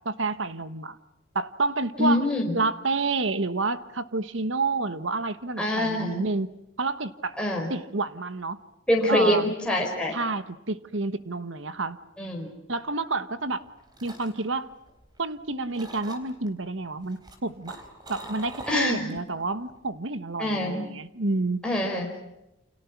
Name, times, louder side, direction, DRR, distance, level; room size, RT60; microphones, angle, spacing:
voice 1, 0.0-1.0 1.3-2.3 2.5-6.5 6.8-7.3 7.7-8.6 9.1-9.5 10.1-12.0 12.7-13.6 14.0-14.7 15.2-17.8 18.1-21.6, right 3 dB, 65° right, 13 dB, 1.3 m, -29 dB
voice 2, 2.0-2.6 5.6-6.2 7.4-7.7 8.9-10.2 12.2-12.5 18.7-19.1 20.4-20.9 21.6-22.1, left 1 dB, 5° left, -1 dB, 4.6 m, -25 dB
sound 1, 13.5-15.4 15.7-16.5 17.0-19.3 19.6-19.9, right 1 dB, 20° right, 4.0 m, -43 dB
29.5 x 28.0 x 6.0 m, 0.87 s
head